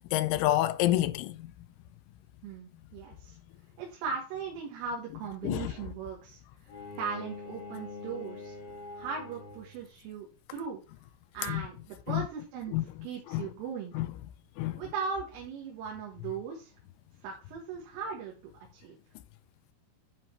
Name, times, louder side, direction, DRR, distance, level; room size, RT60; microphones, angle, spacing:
voice 1, 0.1-1.5 5.4-5.7 11.5-11.6 12.1-12.2 12.7-12.8 13.3-13.5 13.9-14.1 14.6-14.8, left 15 dB, 85° left, 3.0 m, -28 dB
voice 2, 2.4-3.4 3.8-6.4 7.0-8.6 8.9-10.8 11.3-12.8 13.0-13.9 14.8-16.7 17.2-18.3 18.7-19.0, right 5 dB, 90° right, 4.2 m, -38 dB
Bowed string instrument, 6.7-9.9, left 3 dB, 50° left, 4.3 m, -44 dB
11.0 x 4.5 x 4.5 m
omnidirectional pair, 5.6 m